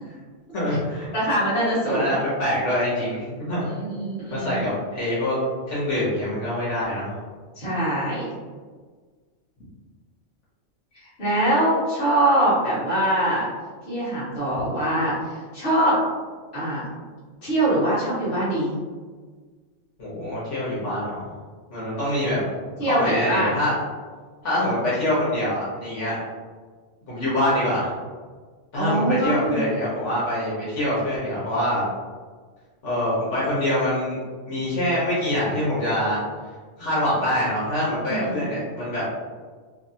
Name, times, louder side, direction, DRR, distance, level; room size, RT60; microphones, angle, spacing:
voice 1, 0.5-1.1 1.8-3.7 4.3-5.3 5.7-7.1 20.0-21.3 21.7-22.4 22.8-23.7 24.4-26.2 27.1-27.9 28.7-31.8 32.8-34.2 34.5-36.2 36.8-39.0, left 1 dB, 75° left, -9 dB, 1.4 m, -25 dB
voice 2, 1.1-2.1 3.6-4.6 7.6-8.3 11.2-13.5 13.9-16.0 16.5-16.9 17.4-18.7 22.8-23.6 28.7-29.6 38.0-38.8, right 1 dB, 60° left, -9 dB, 1.5 m, -23 dB
3.3 x 2.4 x 2.7 m, 1.5 s
omnidirectional pair, 1.2 m